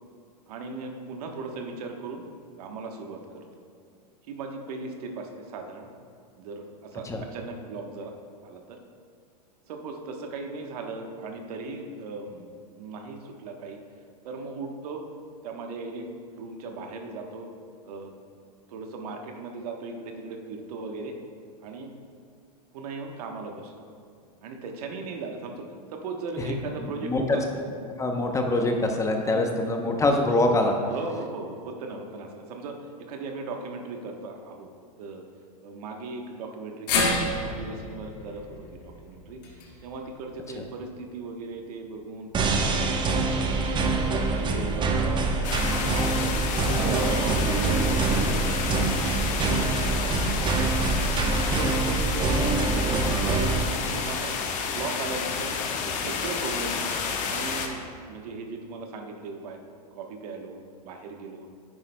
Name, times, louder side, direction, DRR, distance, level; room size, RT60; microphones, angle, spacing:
voice 1, 0.5-2.2 2.6-3.6 4.3-5.9 6.4-8.1 8.4-8.8 9.7-12.5 12.8-13.8 14.2-15.1 15.4-16.1 16.3-17.5 17.8-18.1 18.7-21.1 21.6-21.9 22.7-23.9 24.4-25.6 25.9-27.6 29.2-29.5 30.8-34.7 35.0-35.2 35.6-39.4 39.8-42.8 43.3-45.3 45.6-46.4 46.7-50.7 51.2-52.7 53.4-54.3 54.6-55.5 55.8-56.9 57.2-59.6 59.9-61.5, right 3 dB, 70° right, 3 dB, 1.1 m, -38 dB
voice 2, 28.0-30.8 46.7-47.0, left 2 dB, 15° left, 3 dB, 0.7 m, -24 dB
sound 1, 36.9-41.1 41.5-41.6 42.8-42.9, left 2 dB, 80° left, 1.9 m, -31 dB
sound 2, 42.3-53.6, right 3 dB, 25° right, 0.8 m, -25 dB
sound 3, 45.4-57.7, left 5 dB, 40° left, 1.0 m, -30 dB
9.7 x 9.7 x 2.2 m, 2.2 s
hypercardioid pair, 120°, 20 cm